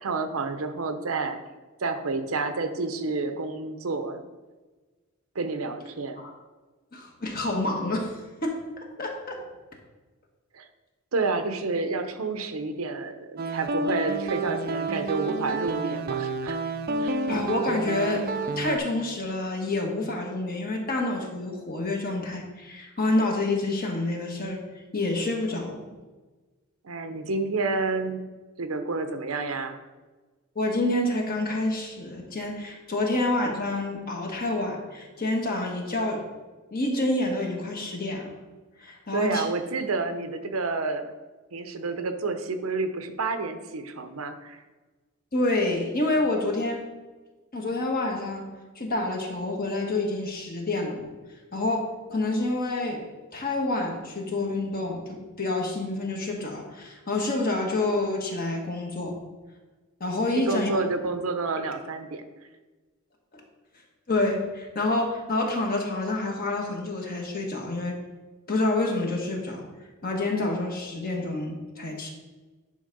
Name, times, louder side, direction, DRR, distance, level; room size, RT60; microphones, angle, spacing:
voice 1, 0.0-1.4 1.8-4.2 5.3-6.2 10.5-10.7 11.1-16.6 17.0-17.2 26.8-28.2 28.6-29.8 39.1-41.1 41.5-44.6 60.3-62.2, right 3 dB, 90° right, 8 dB, 0.8 m, -29 dB
voice 2, 6.9-8.1 8.4-9.4 17.3-18.2 18.6-24.6 24.9-25.8 30.5-36.2 36.7-38.3 38.8-39.5 45.3-46.8 47.5-48.5 48.7-51.1 51.5-51.8 52.1-53.0 53.3-59.2 60.0-60.8 63.3-63.4 64.1-67.9 68.5-69.7 70.0-72.1, left 2 dB, 45° left, 0 dB, 1.4 m, -28 dB
sound 1, 13.4-18.8, right 3 dB, 45° right, 0.5 m, -29 dB
10.0 x 3.5 x 5.3 m, 1.2 s
head